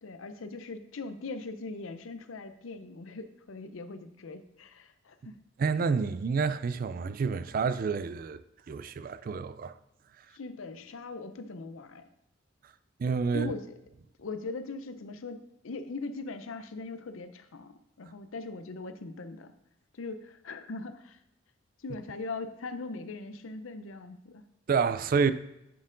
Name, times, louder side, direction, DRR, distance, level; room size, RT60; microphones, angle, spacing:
voice 1, 0.0-5.4 10.3-12.1 13.3-13.7 14.2-15.4 15.6-19.5 19.9-21.2 21.8-24.4, left 3 dB, 75° left, 0.6 m, -40 dB
voice 2, 5.6-8.4 8.7-9.8 13.0-13.5 24.7-25.3, right 5 dB, 45° right, 0.3 m, -28 dB
9.5 x 4.4 x 3.8 m
head